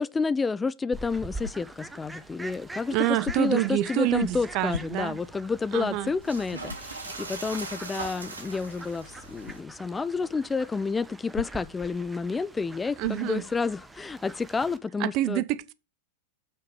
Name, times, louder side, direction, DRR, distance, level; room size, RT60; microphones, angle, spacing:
voice 1, 0.0-15.4, left 4 dB, 15° left, 0.4 m, -30 dB
Fowl, 0.9-14.8, right 2 dB, 10° right, 1.1 m, -45 dB
sound 1, 1.4-1.9 3.2-3.7 4.7-5.3 5.8-5.9 6.7-7.0 9.4-9.7 11.3-11.8 13.0-13.4, left 5 dB, 75° left, 0.4 m, -39 dB
voice 2, 2.9-5.2 5.7-6.1 13.0-13.4 15.0-15.7, right 15 dB, 40° right, 0.7 m, -27 dB
sound 2, 4.1-9.6, right 3 dB, 75° right, 2.3 m, -41 dB
7.7 x 5.9 x 6.8 m
figure-of-eight pair, 90°, 0 cm